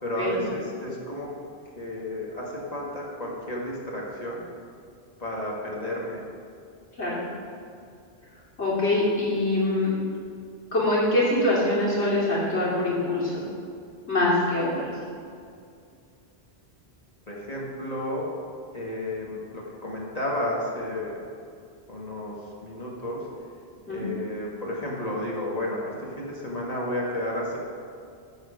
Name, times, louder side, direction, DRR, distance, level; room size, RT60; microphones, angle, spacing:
voice 1, 0.0-1.3 1.7-4.4 5.2-6.2 17.3-18.3 18.7-21.2 21.9-23.2 23.9-27.6, left 1 dB, 40° left, -4 dB, 1.6 m, -32 dB
voice 2, 8.6-9.9 10.7-13.4 14.1-14.9 23.9-24.1, left 1 dB, 85° left, -7 dB, 3.1 m, -24 dB
13.5 x 4.9 x 5.1 m, 2.4 s
omnidirectional pair, 1.1 m